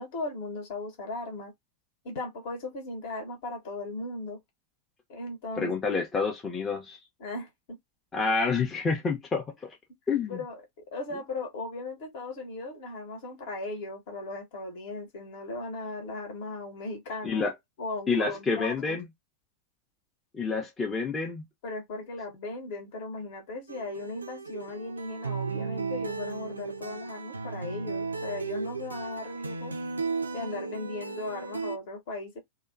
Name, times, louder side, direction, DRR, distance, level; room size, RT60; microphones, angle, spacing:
voice 1, 0.0-1.5 2.0-4.4 5.1-6.0 7.2-7.5 10.3-10.6 10.9-17.5 17.8-19.0 21.6-29.7 30.3-32.4, left 2 dB, 50° left, 1.0 m, -37 dB
voice 2, 5.6-7.0 8.1-9.7 10.1-10.4 17.2-17.5 18.1-19.0 20.3-21.5, left 4 dB, 20° left, 0.6 m, -28 dB
sound 1, 23.7-31.8, right 4 dB, 80° right, 0.3 m, -35 dB
2.8 x 2.2 x 2.4 m
figure-of-eight pair, 90°, 0 cm